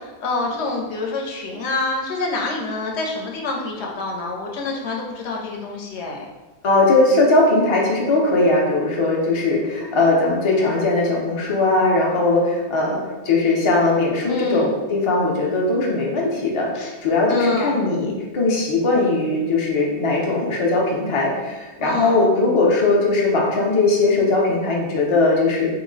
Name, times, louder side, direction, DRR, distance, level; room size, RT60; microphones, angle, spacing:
voice 1, 0.0-6.3 14.2-14.7 16.7-16.9 17.3-17.8 21.8-22.2, left 3 dB, 80° left, 0 dB, 0.9 m, -27 dB
voice 2, 6.6-25.7, left 2 dB, 40° left, -2 dB, 0.5 m, -19 dB
3.0 x 2.0 x 3.8 m, 1.2 s
omnidirectional pair, 1.1 m